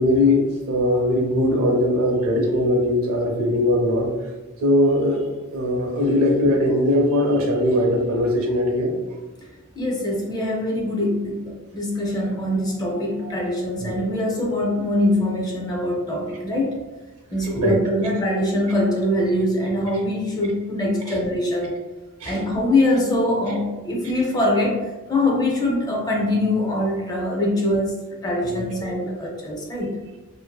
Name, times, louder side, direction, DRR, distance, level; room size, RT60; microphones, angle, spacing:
voice 1, 0.0-4.1 4.6-5.2 5.5-8.9 13.8-13.9 17.6-17.8 22.2-22.3 28.4-28.6, left 1 dB, 70° right, 1 dB, 0.6 m, -20 dB
voice 2, 9.7-16.7 17.3-21.7 22.2-24.8 25.1-30.0, left 1 dB, 20° left, -2 dB, 0.5 m, -23 dB
2.6 x 2.4 x 2.2 m, 1.2 s
head